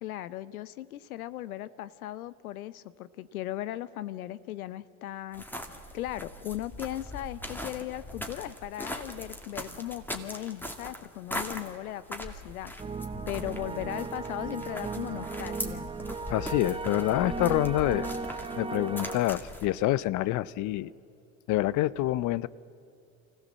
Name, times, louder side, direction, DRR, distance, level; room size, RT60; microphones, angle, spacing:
voice 1, 0.0-5.4 5.9-12.7 13.3-15.9, left 13 dB, 90° left, 17 dB, 0.7 m, -37 dB
sound 1, 5.3-19.7, left 1 dB, 5° left, 2.1 m, -40 dB
sound 2, 12.8-19.2, right 4 dB, 15° right, 0.8 m, -36 dB
voice 2, 16.3-18.1 18.6-20.9 21.5-22.5, left 16 dB, 45° left, 20 dB, 0.6 m, -27 dB
25.0 x 15.5 x 7.4 m, 2.6 s
hypercardioid pair, 90°, 42 cm